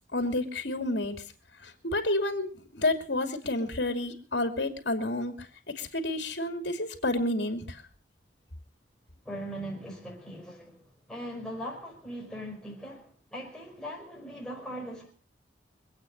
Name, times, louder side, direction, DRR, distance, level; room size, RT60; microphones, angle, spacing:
voice 1, 0.1-1.2 1.6-7.8, left 2 dB, 75° left, 2.7 m, -30 dB
voice 2, 9.2-15.1, equal, 5° left, 5.1 m, -40 dB
25.5 x 8.7 x 5.4 m
head